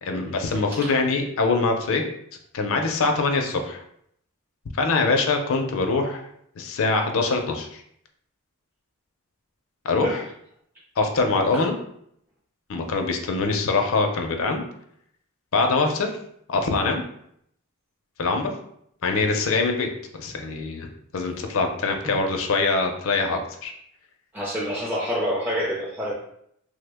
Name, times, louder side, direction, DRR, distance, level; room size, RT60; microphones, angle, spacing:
voice 1, 0.0-2.0 2.5-3.8 4.8-6.2 6.6-7.8 9.8-10.2 11.0-11.7 12.7-14.6 15.5-16.1 16.5-17.0 18.2-18.5 19.0-19.9 20.2-20.9 21.1-23.7, left 3 dB, 60° left, 4 dB, 0.5 m, -23 dB
voice 2, 0.7-1.0 10.0-10.2 11.5-11.6 22.0-22.1 24.3-26.1, equal, 10° right, -6 dB, 0.5 m, -28 dB
3.1 x 2.1 x 3.3 m, 0.71 s
head